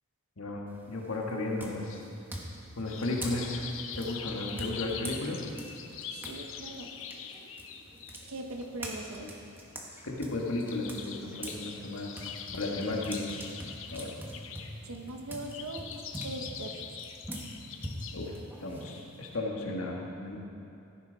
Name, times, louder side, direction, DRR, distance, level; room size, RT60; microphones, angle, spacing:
voice 1, 0.4-2.0 2.8-3.6 3.9-5.4 9.2-9.3 10.0-12.3 12.5-13.4 13.9-14.1 18.1-18.3 18.6-20.4, left 2 dB, 80° left, -1 dB, 1.6 m, -34 dB
sound 1, 0.7-1.1 1.6-6.4 6.7-11.6 12.0-19.4, equal, 10° right, 1.1 m, -43 dB
sound 2, 2.8-18.3 18.7-18.8, left 7 dB, 65° left, 0.7 m, -44 dB
voice 2, 6.1-6.9 8.3-9.3 14.8-16.8, right 2 dB, 85° right, 4 dB, 0.8 m, -41 dB
13.5 x 10.5 x 4.0 m, 2.7 s
head